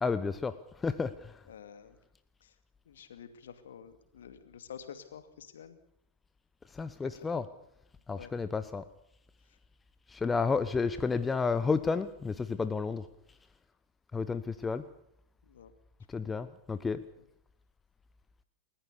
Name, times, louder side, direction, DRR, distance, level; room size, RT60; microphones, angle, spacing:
voice 1, 0.0-1.4 6.7-7.5 8.1-8.8 10.1-13.1 14.1-14.9 16.1-17.0, left 4 dB, 15° left, 12 dB, 0.9 m, -31 dB
voice 2, 1.5-2.0 2.4-2.5 2.9-5.8 7.3-7.5 8.1-8.4 15.5-15.7 16.1-16.3, left 8 dB, 65° left, 9 dB, 2.4 m, -49 dB
29.0 x 14.5 x 6.8 m, 0.80 s
figure-of-eight pair, 90°, 0 cm